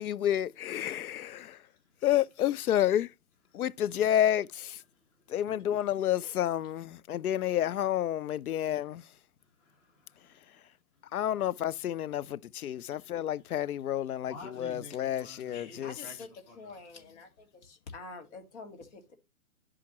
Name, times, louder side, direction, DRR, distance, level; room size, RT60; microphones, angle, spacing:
voice 1, 0.0-1.6 2.0-3.1 3.5-4.8 5.3-9.0 11.1-16.0, left 11 dB, 80° left, 0.6 m, -30 dB
voice 2, 5.3-5.6 8.7-8.8 9.6-10.6 12.9-13.1 14.2-17.2, left 2 dB, 25° left, 2.9 m, -51 dB
voice 3, 15.5-16.3 16.6-19.1, left 3 dB, 50° left, 2.1 m, -47 dB
11.5 x 5.0 x 2.9 m
hypercardioid pair, 140°, 43 cm